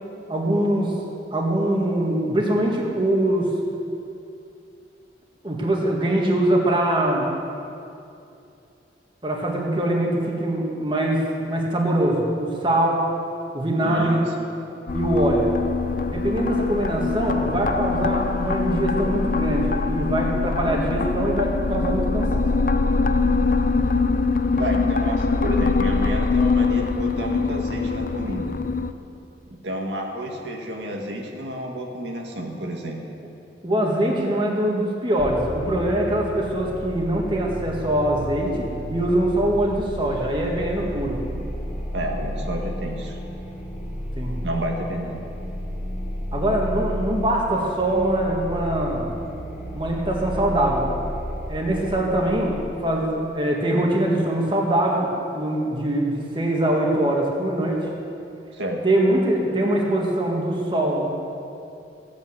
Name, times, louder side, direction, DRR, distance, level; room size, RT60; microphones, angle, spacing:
voice 1, 0.3-1.0 1.3-3.6 5.4-7.3 9.2-13.1 13.5-14.2 14.9-15.5 16.1-22.5 33.6-41.2 44.1-44.4 46.3-49.1 49.7-50.9 51.5-57.9 58.8-61.1, right 1 dB, 30° right, -1 dB, 1.8 m, -23 dB
voice 2, 13.8-14.5 24.6-28.6 29.6-33.0 41.9-43.2 44.4-45.2 58.5-58.8, right 1 dB, 85° right, 1 dB, 1.9 m, -30 dB
sound 1, 14.9-28.9, left 4 dB, 50° left, 0.5 m, -23 dB
sound 2, 35.2-52.6, equal, 5° right, 2.7 m, -33 dB
15.5 x 8.8 x 8.0 m, 2.6 s
head